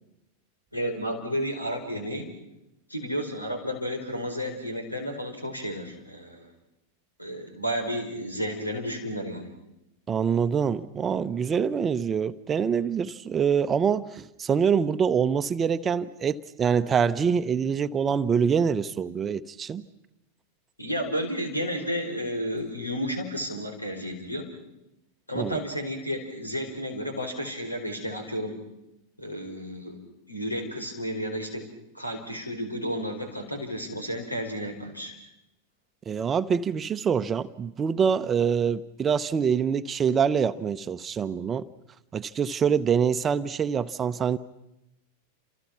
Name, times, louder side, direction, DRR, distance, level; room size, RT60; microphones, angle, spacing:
voice 1, 0.7-2.3 2.9-6.5 7.2-9.5 20.8-24.5 25.3-28.6 29.2-30.0 30.3-31.7 31.9-35.1, equal, 85° left, 6 dB, 4.6 m, -32 dB
voice 2, 10.1-19.9 25.4-25.6 36.1-41.7 42.1-44.4, right 7 dB, 20° right, 13 dB, 0.9 m, -25 dB
29.5 x 27.5 x 6.1 m, 0.89 s
figure-of-eight pair, 90°, 0 cm